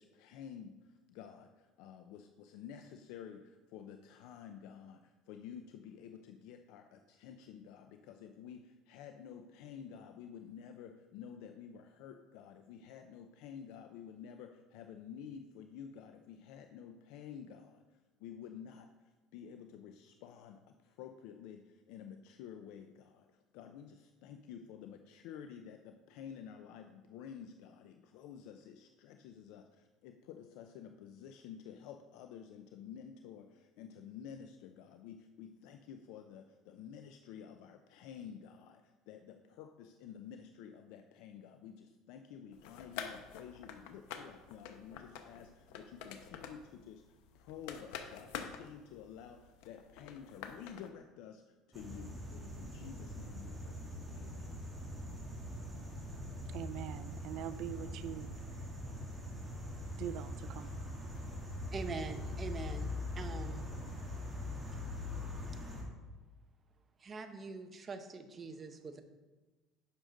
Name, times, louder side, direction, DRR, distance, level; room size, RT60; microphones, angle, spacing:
voice 1, 0.0-53.8 54.1-54.6, left 8 dB, 70° left, 0.5 m, -51 dB
sound 1, 42.5-50.9, left 7 dB, 85° left, 0.8 m, -48 dB
sound 2, 51.7-65.8, left 1 dB, 5° right, 1.5 m, -42 dB
voice 2, 56.5-58.3 60.0-60.8, right 11 dB, 50° right, 0.4 m, -42 dB
voice 3, 61.7-63.7 67.0-69.0, right 4 dB, 20° right, 0.7 m, -44 dB
10.0 x 6.4 x 3.8 m
cardioid pair, 170°, 0 cm